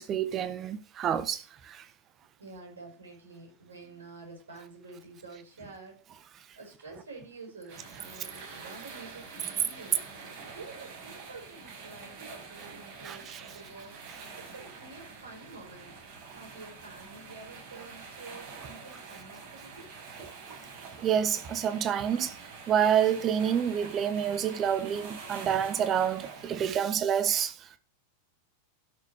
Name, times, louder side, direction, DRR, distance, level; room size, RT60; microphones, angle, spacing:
voice 1, 0.0-1.9 13.0-13.4 21.0-22.4 22.7-27.8, right 9 dB, 30° right, 1.3 m, -28 dB
voice 2, 2.4-6.3 6.6-10.0 10.5-19.9, right 3 dB, 70° right, 5.9 m, -49 dB
sound 1, 7.7-26.6, right 5 dB, 50° right, 6.2 m, -46 dB
12.0 x 7.0 x 6.5 m
figure-of-eight pair, 90°, 0 cm